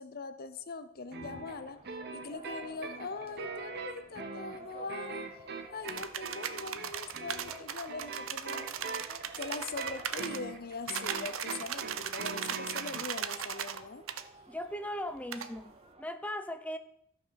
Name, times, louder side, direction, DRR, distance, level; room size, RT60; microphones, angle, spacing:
voice 1, 0.0-1.8 2.1-5.3 5.7-8.7 9.4-14.1, left 4 dB, 45° left, 0.7 m, -41 dB
sound 1, 1.1-16.0, right 2 dB, 30° right, 1.2 m, -53 dB
sound 2, 1.1-13.1, right 4 dB, 55° right, 1.3 m, -42 dB
sound 3, 5.9-10.4 10.9-13.8 14.1-14.2 15.3-15.5, right 8 dB, 70° right, 0.7 m, -38 dB
voice 2, 14.5-16.8, left 1 dB, 5° left, 0.6 m, -38 dB
13.5 x 6.1 x 6.3 m
head